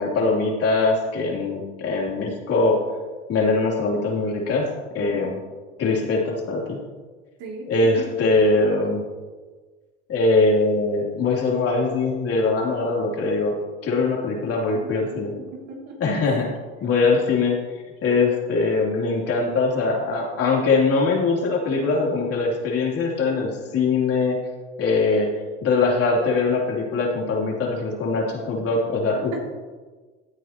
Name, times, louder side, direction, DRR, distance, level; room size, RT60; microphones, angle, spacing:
voice 1, 0.0-2.8 3.3-4.7 4.9-5.4 5.8-6.8 7.7-9.0 10.1-13.5 13.8-15.3 16.0-16.5 16.8-17.5 18.0-24.4 24.8-25.3 25.6-29.4, left 3 dB, 50° left, -2 dB, 3.4 m, -22 dB
voice 2, 5.0-5.3 7.4-7.7 8.0-8.1 15.1-15.4 15.7-16.3, right 3 dB, 65° right, -1 dB, 2.9 m, -38 dB
15.5 x 8.4 x 3.0 m, 1.4 s
supercardioid pair, 85°, 31 cm